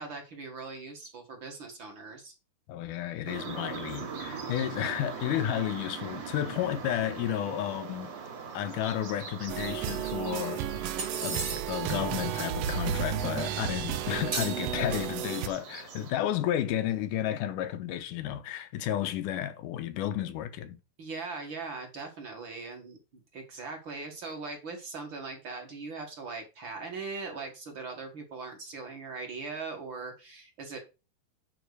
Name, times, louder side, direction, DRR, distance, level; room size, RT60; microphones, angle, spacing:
voice 1, 0.0-2.3 21.0-23.0 23.3-30.8, right 4 dB, 45° right, 2.1 m, -40 dB
voice 2, 2.7-8.2 8.5-20.8, left 11 dB, 85° left, 2.4 m, -32 dB
sound 1, 3.3-16.1, right 6 dB, 65° right, 4.0 m, -42 dB
sound 2, 9.5-15.5, right 9 dB, 85° right, 1.4 m, -33 dB
sound 3, 11.0-11.9 14.3-15.4, right 3 dB, 25° right, 1.8 m, -36 dB
9.4 x 4.0 x 6.6 m
omnidirectional pair, 3.7 m